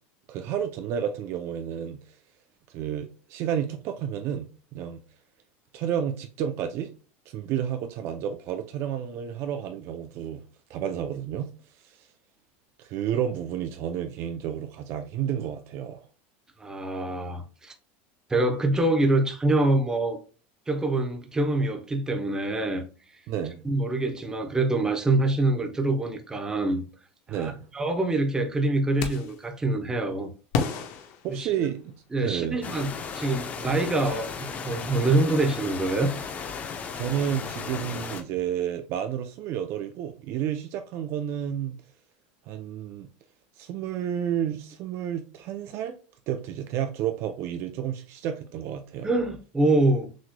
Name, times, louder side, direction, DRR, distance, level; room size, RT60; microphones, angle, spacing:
voice 1, 0.3-2.0 2.7-5.0 5.7-6.9 7.3-10.4 10.7-11.5 11.9-12.0 12.8-16.0 23.3-23.6 27.3-27.6 31.2-31.8 32.2-32.6 36.9-41.8 42.5-43.1 43.6-46.0 46.3-49.1, right 9 dB, 45° right, 0.5 m, -31 dB
voice 2, 16.6-17.7 18.3-20.2 20.7-22.8 23.1-23.2 23.6-26.8 27.3-30.3 31.3-31.7 32.1-36.1 49.0-50.1, right 2 dB, 10° right, 0.8 m, -25 dB
sound 1, 29.0-29.5 30.5-32.0, left 5 dB, 65° left, 1.0 m, -31 dB
sound 2, 32.6-38.2, left 6 dB, 25° left, 0.7 m, -35 dB
6.2 x 3.1 x 2.2 m
supercardioid pair, 140°, 6 cm